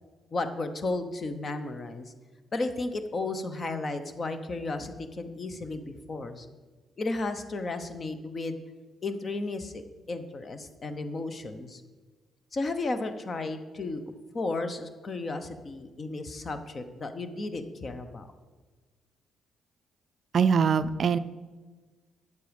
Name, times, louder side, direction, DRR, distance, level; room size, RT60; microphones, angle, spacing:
voice 1, 0.3-2.1 2.5-6.5 7.0-8.6 9.0-9.8 10.1-11.8 12.5-14.0 14.3-18.3, left 2 dB, 40° left, 9 dB, 0.9 m, -33 dB
voice 2, 20.3-21.2, right 6 dB, 55° right, 14 dB, 0.4 m, -23 dB
9.6 x 7.6 x 5.2 m, 1.4 s
cardioid pair, 90°, 0 cm